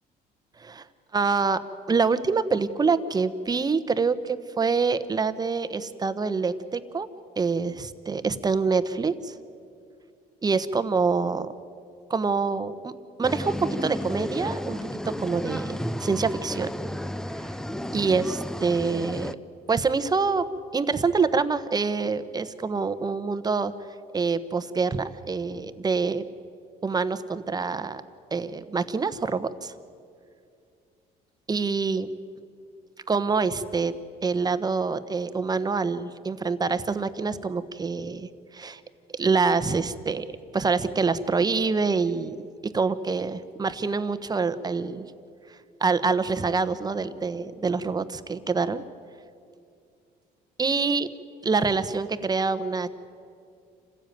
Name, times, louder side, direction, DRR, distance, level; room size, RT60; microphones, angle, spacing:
voice 1, 1.1-1.6 1.9-7.1 7.4-9.3 10.4-11.5 12.1-14.8 15.1-16.7 17.9-19.3 19.7-20.5 20.7-23.7 24.1-26.2 26.8-28.0 28.3-29.7 31.5-32.1 33.1-33.9 34.2-38.3 38.5-38.8 39.1-40.3 40.5-42.4 42.6-45.1 45.8-48.8 50.6-51.1 51.4-52.9, right 4 dB, 25° right, 12 dB, 1.0 m, -26 dB
sound 1, 13.2-19.3, left 1 dB, 5° left, 0.6 m, -32 dB
27.5 x 15.5 x 9.2 m, 2.4 s
cardioid pair, 110°, 17 cm